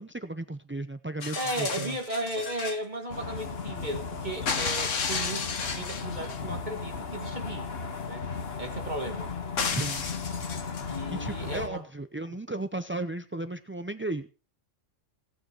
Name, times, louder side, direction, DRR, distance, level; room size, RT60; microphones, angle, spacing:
voice 1, 0.0-2.0 9.7-10.1 11.1-14.3, right 2 dB, 20° right, 10 dB, 0.3 m, -35 dB
sound 1, 1.2-2.8 4.5-6.4 9.6-11.0 12.2-12.3, left 5 dB, 85° left, 1.7 m, -32 dB
voice 2, 1.3-7.7 8.1-8.3 8.6-9.3 10.9-11.8, right 1 dB, 35° right, 4 dB, 2.1 m, -35 dB
sound 2, 3.1-11.7, left 5 dB, 55° left, 1.6 m, -36 dB
18.0 x 9.6 x 4.5 m, 0.35 s
omnidirectional pair, 1.3 m